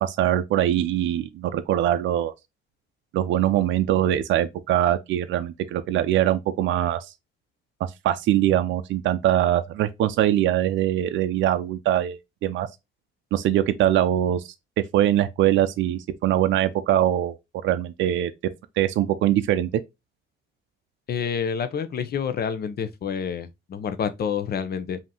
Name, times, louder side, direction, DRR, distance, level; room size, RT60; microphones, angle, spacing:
voice 1, 0.0-2.3 3.1-7.1 8.0-12.7 13.3-14.4 14.9-17.4 17.6-18.3 18.8-19.7, right 12 dB, 70° right, 0.4 m, -22 dB
voice 2, 21.1-25.0, left 7 dB, 50° left, 0.7 m, -28 dB
5.2 x 2.8 x 2.9 m
cardioid pair, 90°, 20 cm